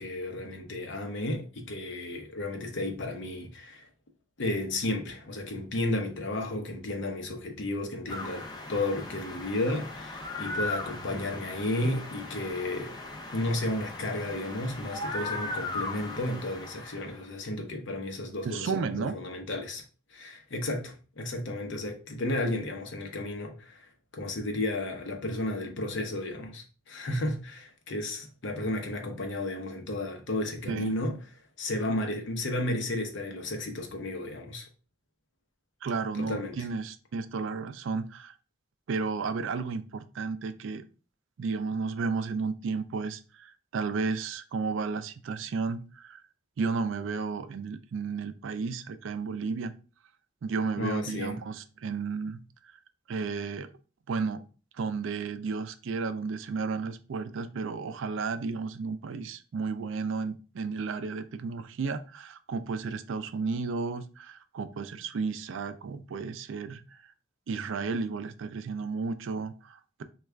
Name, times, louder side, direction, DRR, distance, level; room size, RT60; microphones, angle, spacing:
voice 1, 0.0-3.9 4.4-12.9 13.3-19.8 20.1-23.9 24.1-31.2 31.6-34.7 36.2-36.6 50.8-51.4, left 1 dB, 65° left, 0.7 m, -33 dB
Fox noise, 8.1-17.2, left 2 dB, 20° left, 0.5 m, -38 dB
voice 2, 18.4-19.1 30.7-30.9 35.8-38.3 38.9-40.9 41.4-46.2 46.6-49.7 50.4-52.7 53.1-53.7 54.1-54.4 54.7-67.0 67.5-70.0, right 4 dB, 75° right, 0.4 m, -33 dB
3.4 x 2.3 x 3.2 m
head